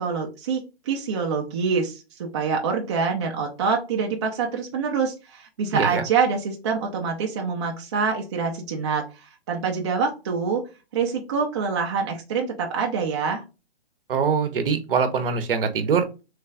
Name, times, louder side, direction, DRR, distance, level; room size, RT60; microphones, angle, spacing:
voice 1, 0.0-10.6 10.9-13.4, right 5 dB, 30° right, 1 dB, 0.4 m, -26 dB
voice 2, 5.7-6.0 14.1-16.2, right 6 dB, 60° right, 8 dB, 0.7 m, -23 dB
3.2 x 2.3 x 3.2 m, 0.29 s
hypercardioid pair, 140°, 32 cm